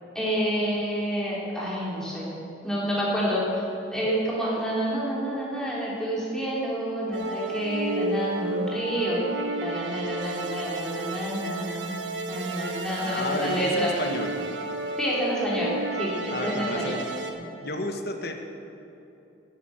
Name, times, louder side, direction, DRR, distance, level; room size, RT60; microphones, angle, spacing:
voice 1, 0.1-2.3 2.6-3.4 3.9-9.2 9.6-12.0 12.3-13.9 15.0-17.0, equal, 5° left, -7 dB, 3.3 m, -28 dB
sound 1, 7.1-17.3, right 2 dB, 75° right, 1.1 m, -32 dB
voice 2, 13.0-14.4 16.3-17.1 17.6-18.3, left 2 dB, 55° left, 4 dB, 1.2 m, -31 dB
11.0 x 9.7 x 7.7 m, 2.9 s
head